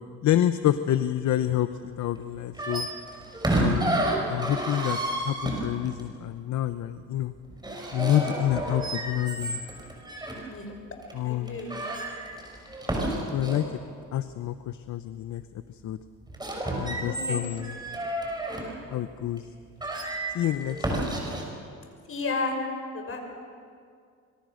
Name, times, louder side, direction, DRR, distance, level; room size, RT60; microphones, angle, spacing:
voice 1, 0.2-2.9 3.6-5.0 5.2-7.3 7.9-9.6 11.1-11.6 13.3-13.7 14.1-15.4 15.7-16.0 16.8-17.7 18.9-19.5 20.3-21.0, left 12 dB, 70° left, 11 dB, 0.9 m, -28 dB
sound 1, 2.5-6.0 7.5-10.4 11.0-11.1 11.5-13.7 16.2-18.7 19.4-19.5 19.8-21.4, right 1 dB, 15° right, 6.2 m, -30 dB
voice 2, 11.2-11.7 17.0-17.4 22.1-22.6 22.9-23.2, left 3 dB, 45° left, 3 dB, 6.0 m, -32 dB
26.0 x 23.5 x 6.5 m, 2.2 s
cardioid pair, 90°, 30 cm